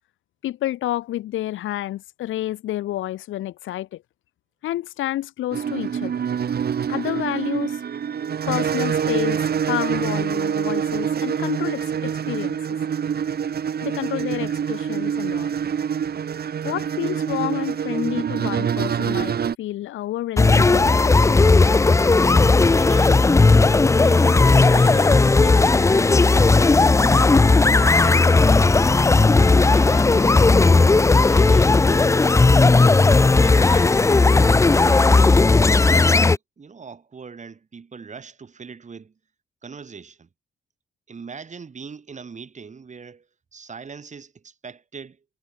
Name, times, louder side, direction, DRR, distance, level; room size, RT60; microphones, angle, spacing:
voice 1, 0.4-4.0 4.6-6.2 6.9-7.8 8.5-12.8 13.8-15.6 16.6-21.4, left 14 dB, 80° left, 1.4 m, -29 dB
sound 1, 5.5-19.5, right 8 dB, 55° right, 4.5 m, -25 dB
sound 2, 20.4-36.4, left 3 dB, 15° left, 0.5 m, -15 dB
voice 2, 22.6-23.6 24.0-26.2 27.0-30.8 31.1-32.6 33.3-34.1 34.7-36.1 36.6-39.2 39.6-40.3 41.1-45.2, right 5 dB, 35° right, 6.4 m, -41 dB
cardioid pair, 90°, 20 cm